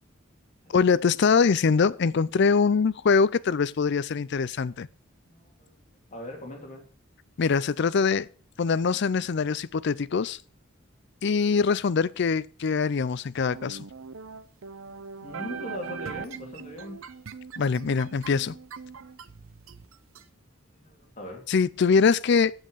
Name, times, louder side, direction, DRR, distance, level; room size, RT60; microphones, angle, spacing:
voice 1, 0.7-4.9 7.4-8.3 8.6-10.4 11.2-13.8 17.6-18.5 21.5-22.5, left 5 dB, 55° left, 0.4 m, -23 dB
voice 2, 5.3-5.8 6.1-6.8 15.2-17.0 20.7-21.4, left 1 dB, 35° left, 2.9 m, -40 dB
sound 1, 13.4-20.2, right 5 dB, 80° right, 0.7 m, -41 dB
7.8 x 7.4 x 6.4 m
head